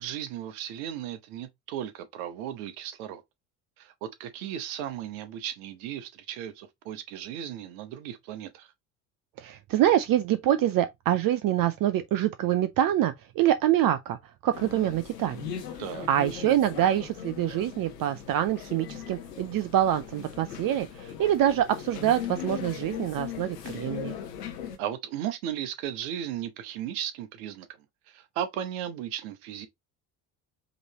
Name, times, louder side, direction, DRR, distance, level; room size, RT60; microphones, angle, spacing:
voice 1, 0.0-3.2 3.8-8.7 15.8-16.1 24.8-27.7 28.1-29.7, right 10 dB, 70° right, 1.0 m, -36 dB
voice 2, 9.4-14.2 14.4-15.5 16.1-24.2, right 12 dB, 50° right, 0.5 m, -25 dB
sound 1, 14.5-24.8, left 9 dB, 90° left, 1.0 m, -39 dB
5.1 x 3.1 x 2.8 m
hypercardioid pair, 60°, 47 cm